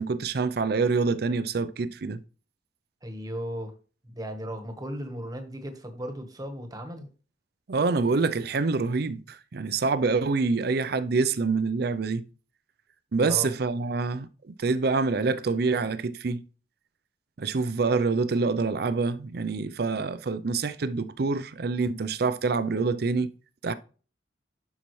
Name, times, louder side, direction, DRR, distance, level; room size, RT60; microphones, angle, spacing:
voice 1, 0.0-2.2 7.7-12.2 13.1-16.4 17.4-23.3 23.6-23.7, right 4 dB, 55° right, 0.5 m, -26 dB
voice 2, 3.0-3.7 4.0-7.1 13.2-13.5, equal, 20° right, 1.2 m, -36 dB
11.0 x 5.7 x 3.2 m
head